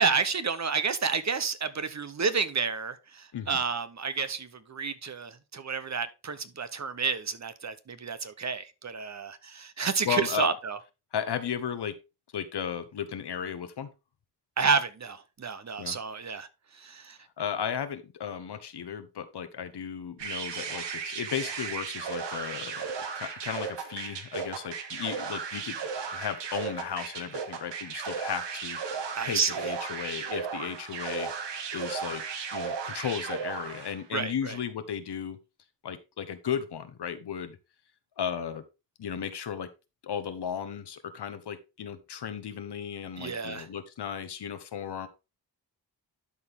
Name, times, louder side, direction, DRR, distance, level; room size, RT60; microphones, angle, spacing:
voice 1, 0.0-10.8 14.6-16.5 16.7-17.2 29.1-29.6 34.1-34.6 43.2-43.7, right 5 dB, 40° right, 0.9 m, -30 dB
voice 2, 10.0-10.5 11.1-11.9 12.3-13.9 15.8-16.0 17.4-25.8 26.1-28.8 29.2-31.3 31.7-32.2 32.5-35.4 35.8-37.6 38.2-38.6 39.0-39.7 40.0-45.1, left 8 dB, 70° left, 1.1 m, -35 dB
sound 1, 20.2-34.0, right 6 dB, 85° right, 1.4 m, -35 dB
11.5 x 4.4 x 3.6 m
cardioid pair, 80°, 41 cm